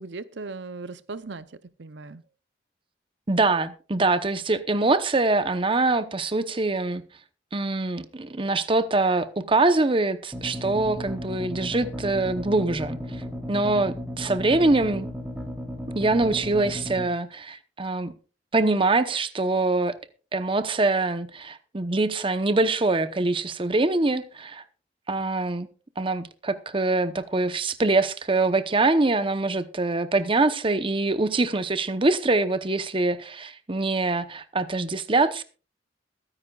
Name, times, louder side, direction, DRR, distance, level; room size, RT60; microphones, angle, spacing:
voice 1, 0.0-2.2, right 3 dB, 70° right, 0.6 m, -38 dB
voice 2, 3.3-7.0 7.5-13.0 13.5-15.1 15.9-18.1 18.5-19.9 20.3-24.6 25.1-25.7 26.0-35.4, right 2 dB, 30° right, 0.9 m, -24 dB
sound 1, 10.3-17.1, equal, 5° right, 3.1 m, -35 dB
22.0 x 10.0 x 2.4 m
head